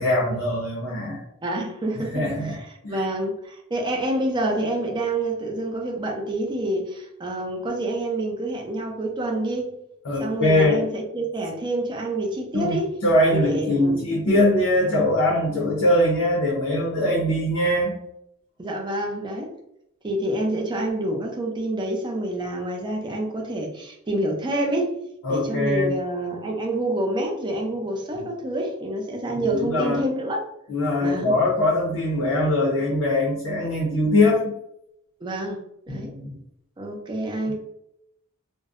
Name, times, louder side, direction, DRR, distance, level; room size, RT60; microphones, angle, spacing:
voice 1, 0.0-1.2 2.1-2.6 2.8-3.0 10.0-10.8 12.5-18.0 25.2-25.9 28.1-28.3 29.3-30.0 30.7-34.5 35.9-36.4, left 1 dB, 75° left, -4 dB, 0.6 m, -22 dB
voice 2, 1.4-9.7 10.2-12.9 13.3-14.0 18.6-19.5 20.0-25.0 25.3-30.4 31.0-31.3 35.2-35.6 35.9-36.1 36.8-37.6, right 1 dB, 20° right, 1 dB, 0.4 m, -27 dB
2.5 x 2.0 x 2.4 m, 0.79 s
head